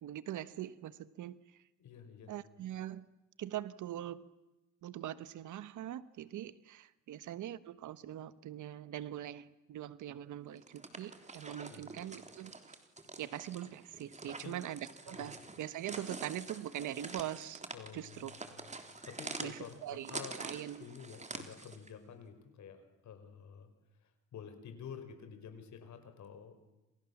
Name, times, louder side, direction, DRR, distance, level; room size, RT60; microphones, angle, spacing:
voice 1, 0.0-1.4 2.3-3.0 3.4-4.2 4.8-12.6 13.2-14.8 15.1-17.6 17.9-18.3 19.4-20.9, right 12 dB, 75° right, 1.3 m, -42 dB
voice 2, 1.8-2.3 11.7-12.0 14.3-14.6 15.1-15.3 17.7-18.6 19.1-20.4 20.8-23.7 24.0-26.6, left 7 dB, 70° left, 5.5 m, -50 dB
sound 1, 10.6-21.9, right 3 dB, 25° right, 3.5 m, -47 dB
28.5 x 28.5 x 7.3 m
cardioid pair, 90°, 30 cm